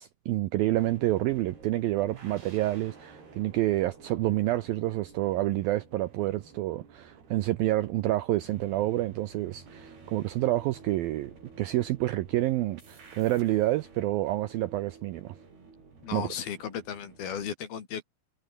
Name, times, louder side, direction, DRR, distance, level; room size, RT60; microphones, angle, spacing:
voice 1, 0.0-15.4 16.1-16.3, right 16 dB, 80° right, 2.2 m, -28 dB
sound 1, 0.6-17.5, right 4 dB, 60° right, 9.6 m, -52 dB
voice 2, 16.0-18.0, left 8 dB, 60° left, 4.6 m, -35 dB
omnidirectional pair, 5.1 m